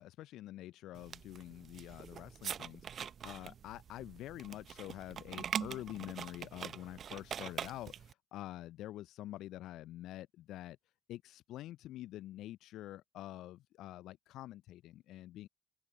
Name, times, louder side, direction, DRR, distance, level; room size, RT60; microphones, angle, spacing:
voice 1, 0.0-10.8 11.1-15.5, left 14 dB, 65° left, 0.6 m, -47 dB
sound 1, 0.9-8.1, right 8 dB, 50° right, 0.9 m, -44 dB
open air
figure-of-eight pair, 45°, 0 cm